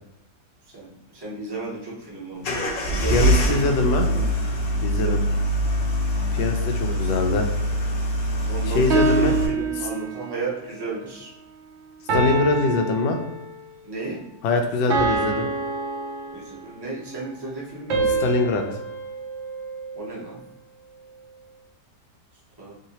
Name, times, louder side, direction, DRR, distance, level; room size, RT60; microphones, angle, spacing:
voice 1, 0.7-3.6 3.9-4.2 4.9-5.2 6.7-7.1 8.4-11.3 12.6-12.7 13.8-14.2 16.3-18.2 19.9-20.4 22.6-22.7, right 3 dB, 20° right, -5 dB, 0.6 m, -34 dB
sound 1, 2.4-9.5, equal, 60° left, 1.0 m, -23 dB
voice 2, 3.1-4.1 4.8-5.2 6.3-7.5 8.6-9.4 9.7-9.9 12.1-13.2 14.4-15.5 18.2-18.6, left 3 dB, 90° left, 4 dB, 1.2 m, -23 dB
sound 2, 8.9-10.4 12.1-13.7 14.9-16.8 17.9-20.2, right 3 dB, 60° right, 0.7 m, -26 dB
3.2 x 2.7 x 2.9 m, 0.88 s
omnidirectional pair, 1.8 m